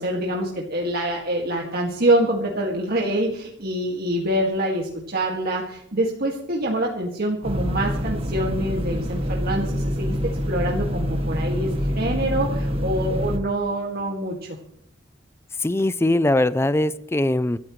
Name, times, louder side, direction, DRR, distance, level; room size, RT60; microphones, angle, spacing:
voice 1, 0.0-14.6, right 1 dB, 55° right, -1 dB, 2.2 m, -25 dB
sound 1, 7.4-13.4, equal, 30° right, 1.7 m, -26 dB
voice 2, 15.6-17.6, left 1 dB, 15° left, 16 dB, 0.5 m, -21 dB
24.5 x 13.5 x 3.2 m, 0.71 s
head